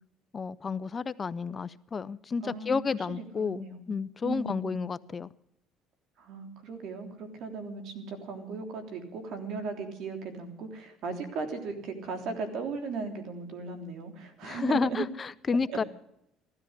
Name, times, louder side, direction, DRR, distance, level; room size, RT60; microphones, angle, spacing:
voice 1, 0.3-5.3 14.4-15.8, left 5 dB, 30° left, 17 dB, 0.6 m, -31 dB
voice 2, 2.4-2.8 3.1-3.9 4.2-4.8 6.2-15.1 15.7-15.9, right 4 dB, 65° right, 5 dB, 3.4 m, -37 dB
16.0 x 13.0 x 6.6 m, 0.80 s
cardioid pair, 100°, 0 cm